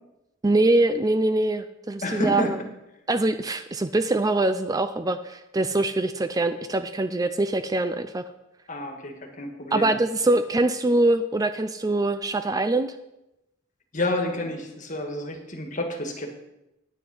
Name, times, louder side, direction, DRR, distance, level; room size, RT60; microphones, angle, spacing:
voice 1, 0.4-2.6 3.1-8.2 9.7-12.9, right 2 dB, 20° right, 10 dB, 0.4 m, -23 dB
voice 2, 2.0-2.5 8.7-9.9 13.9-16.3, left 1 dB, 40° left, 4 dB, 1.6 m, -29 dB
9.4 x 9.4 x 5.4 m, 0.90 s
head